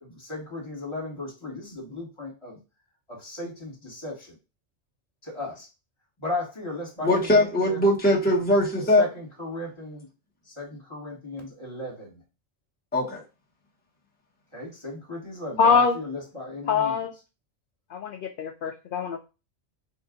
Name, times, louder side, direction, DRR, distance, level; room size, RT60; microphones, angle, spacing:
voice 1, 0.0-2.6 3.1-4.3 5.2-5.7 6.2-7.8 9.0-10.1 10.5-12.2 14.5-17.1, left 2 dB, 25° left, -3 dB, 1.6 m, -36 dB
voice 2, 7.0-9.1 12.9-13.2, left 1 dB, 10° left, -4 dB, 1.0 m, -21 dB
voice 3, 15.6-15.9 16.7-17.1 17.9-19.2, left 5 dB, 60° left, 4 dB, 0.6 m, -23 dB
3.8 x 2.5 x 3.7 m, 0.29 s
omnidirectional pair, 1.1 m